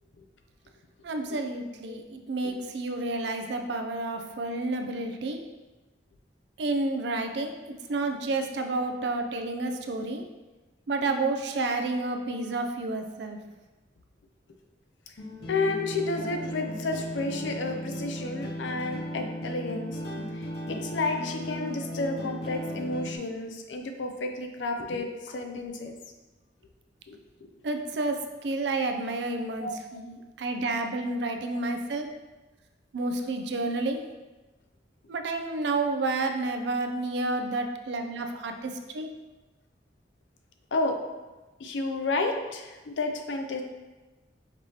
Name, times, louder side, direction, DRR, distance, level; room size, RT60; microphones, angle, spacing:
voice 1, 1.0-5.4 6.6-10.2 10.9-13.4 27.6-32.1 32.9-34.0 35.1-39.1, right 2 dB, 65° right, 5 dB, 0.4 m, -30 dB
sound 1, 15.2-23.2, equal, 60° left, 0.9 m, -36 dB
voice 2, 15.4-20.0 20.3-26.0 27.1-27.2 29.6-29.7 37.7-37.8 40.7-41.0 41.6-43.6, left 3 dB, 85° left, 5 dB, 0.5 m, -31 dB
5.2 x 2.8 x 3.0 m, 1.2 s
head